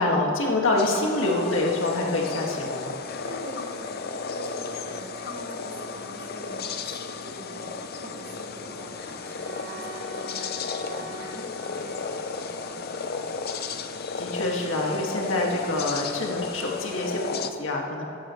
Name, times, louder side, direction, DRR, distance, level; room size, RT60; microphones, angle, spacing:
voice 1, 0.0-3.0 14.2-18.0, left 2 dB, 80° left, -1 dB, 2.0 m, -26 dB
sound 1, 0.8-17.5, left 4 dB, 50° left, 0.6 m, -34 dB
voice 2, 3.2-13.8, right 1 dB, 45° right, -3 dB, 2.4 m, -44 dB
Bowed string instrument, 9.1-14.1, right 1 dB, 10° left, 2.8 m, -44 dB
17.5 x 13.5 x 3.2 m, 2.5 s
head